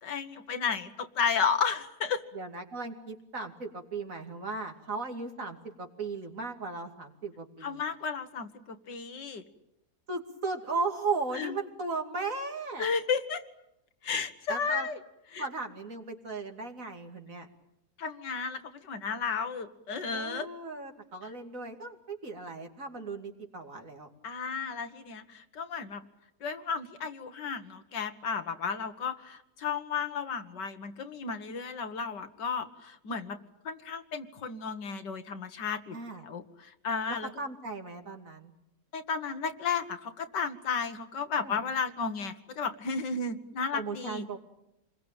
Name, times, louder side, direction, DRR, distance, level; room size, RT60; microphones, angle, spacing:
voice 1, 0.0-2.2 7.6-9.4 11.3-11.6 12.8-13.4 14.0-15.0 15.3-15.4 18.0-20.5 24.2-26.0 26.4-33.4 33.6-37.3 38.9-44.3, left 5 dB, 85° left, 9 dB, 2.2 m, -33 dB
voice 2, 2.3-7.8 10.1-12.9 14.5-14.9 15.4-17.5 20.1-24.1 35.9-36.2 37.4-38.5 41.3-41.6 43.7-44.4, right 3 dB, 50° right, 3 dB, 3.0 m, -36 dB
28.0 x 21.5 x 8.9 m, 0.83 s
omnidirectional pair, 1.8 m